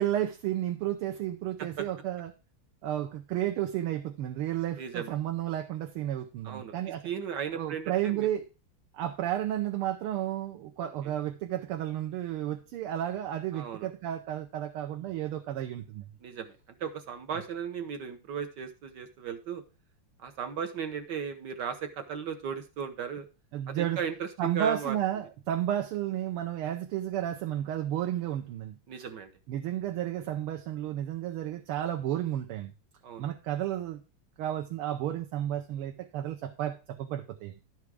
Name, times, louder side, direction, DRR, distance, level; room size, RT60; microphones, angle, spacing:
voice 1, 0.0-2.3 2.8-7.0 7.6-8.5 8.9-16.0 23.5-24.0 24.4-28.8 29.5-32.7 33.2-34.0 34.4-37.5, right 12 dB, 80° right, 3 dB, 1.7 m, -32 dB
voice 2, 4.8-5.2 6.4-6.7 7.0-8.3 10.8-11.1 13.5-13.9 16.2-19.6 20.2-23.3 23.7-25.0 28.9-29.3 33.0-33.3, right 7 dB, 65° right, 7 dB, 1.2 m, -36 dB
11.0 x 4.8 x 4.7 m, 0.31 s
omnidirectional pair, 2.4 m